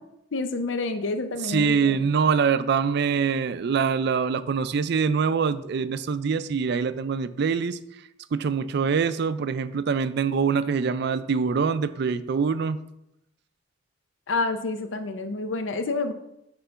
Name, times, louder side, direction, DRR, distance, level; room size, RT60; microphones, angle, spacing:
voice 1, 0.3-2.0 14.3-16.1, left 3 dB, 85° left, 8 dB, 0.6 m, -28 dB
voice 2, 1.4-7.8 8.3-12.8, right 6 dB, 60° right, 13 dB, 0.4 m, -24 dB
6.7 x 3.9 x 5.6 m, 0.82 s
head